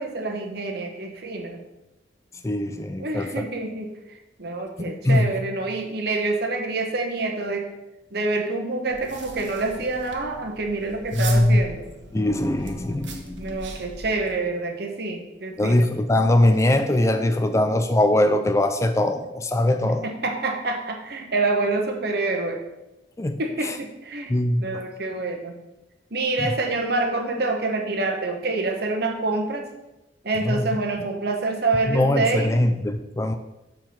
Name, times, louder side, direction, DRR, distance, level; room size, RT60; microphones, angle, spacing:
voice 1, 0.0-1.6 3.0-3.9 4.4-7.7 8.1-11.8 13.4-15.9 19.8-22.6 23.4-24.3 24.6-25.6 26.1-29.7 30.2-32.5, right 3 dB, 55° right, 3 dB, 1.1 m, -27 dB
voice 2, 2.4-3.3 4.8-5.3 11.1-11.6 12.1-13.6 15.6-20.1 23.2-23.8 24.3-24.7 30.5-30.7 31.9-33.3, left 1 dB, 15° left, 8 dB, 0.4 m, -21 dB
sound 1, 8.9-14.3, right 2 dB, 80° right, 1.2 m, -39 dB
7.4 x 4.6 x 5.8 m, 0.97 s
head